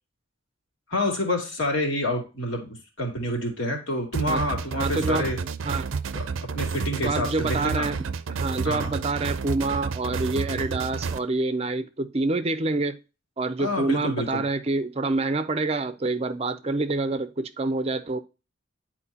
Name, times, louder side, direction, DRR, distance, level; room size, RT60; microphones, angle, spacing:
voice 1, 0.9-5.4 6.1-6.3 6.5-7.9 8.6-8.9 13.6-14.4, left 1 dB, 70° left, 2.5 m, -28 dB
sound 1, 4.1-11.2, right 5 dB, 80° right, 0.5 m, -30 dB
voice 2, 4.7-5.3 5.6-5.9 7.0-8.0 8.3-13.0 13.4-18.2, right 3 dB, 30° right, 0.5 m, -27 dB
10.0 x 4.4 x 2.8 m
head